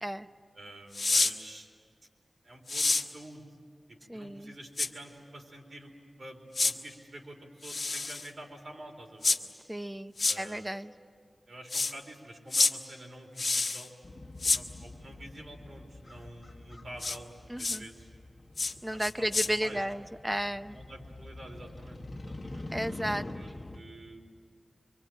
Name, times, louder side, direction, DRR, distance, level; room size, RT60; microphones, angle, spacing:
voice 1, 0.5-1.7 2.4-3.4 3.9-5.9 6.2-9.4 10.3-10.7 11.5-13.9 14.4-18.1 18.9-19.3 19.6-19.8 20.7-22.7 23.3-24.2, right 1 dB, 70° right, 1 dB, 4.0 m, -48 dB
sound 1, 0.9-1.3 2.7-3.0 4.8-4.9 6.5-6.7 7.6-8.3 9.2-9.4 10.2-10.4 11.7-11.9 12.5-12.7 13.4-13.9 14.4-14.6 17.0-17.2 17.6-17.8 18.6-18.7 19.0-19.5, left 3 dB, 70° left, 1.3 m, -27 dB
voice 2, 4.1-4.6 9.7-10.9 17.5-17.9 18.8-20.8 22.7-23.2, right 1 dB, 10° right, 8 dB, 0.8 m, -33 dB
Motorcycle, 14.0-23.8, left 2 dB, 40° left, 1.6 m, -45 dB
25.0 x 25.0 x 9.2 m, 2.1 s
wide cardioid pair, 85°, 0 cm